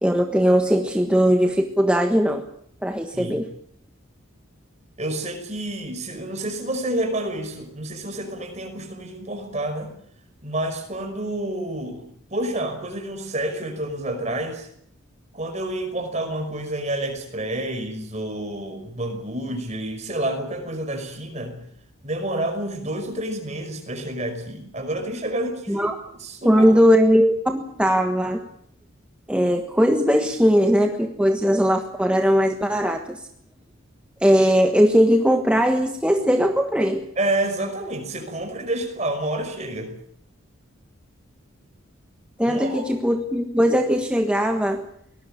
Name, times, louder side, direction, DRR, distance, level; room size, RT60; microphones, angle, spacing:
voice 1, 0.0-2.4 2.8-3.5 25.7-26.0 26.4-28.4 29.3-33.2 34.2-37.0 42.4-44.8, equal, 5° right, 4 dB, 1.4 m, -19 dB
voice 2, 5.0-9.9 10.4-14.7 15.3-21.6 22.0-25.9 26.2-26.7 37.2-39.9 42.4-42.8, right 1 dB, 35° right, 6 dB, 5.5 m, -29 dB
23.5 x 19.0 x 8.5 m, 0.68 s
head